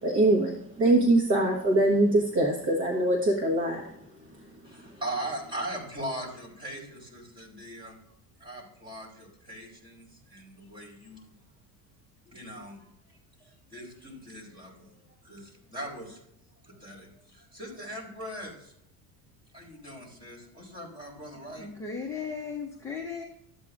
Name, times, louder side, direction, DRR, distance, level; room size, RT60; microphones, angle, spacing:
voice 1, 0.0-3.8, right 2 dB, 35° right, 0 dB, 1.1 m, -23 dB
voice 2, 4.6-8.1 8.4-11.4 12.2-16.2 16.6-18.7 19.5-21.7, right 1 dB, 10° right, -5 dB, 3.6 m, -40 dB
voice 3, 21.6-23.2, left 5 dB, 10° left, -1 dB, 0.7 m, -36 dB
12.5 x 8.3 x 2.5 m, 0.76 s
cardioid pair, 175°, 38 cm